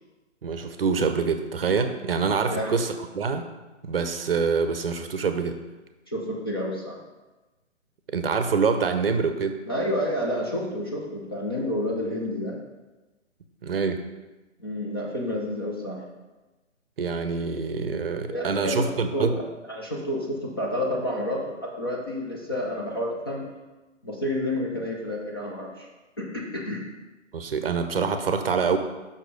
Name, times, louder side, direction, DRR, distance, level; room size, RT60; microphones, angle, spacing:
voice 1, 0.4-3.4 3.8-5.6 8.1-9.6 13.6-14.0 17.0-19.3 27.3-28.8, right 5 dB, 50° right, 7 dB, 0.6 m, -25 dB
voice 2, 2.4-2.8 6.1-7.0 9.7-12.6 14.6-16.0 18.3-19.3 19.7-23.5 24.0-25.9 26.2-26.8, left 1 dB, 20° left, -3 dB, 0.5 m, -29 dB
5.6 x 4.8 x 5.1 m, 1.1 s
figure-of-eight pair, 140°, 38 cm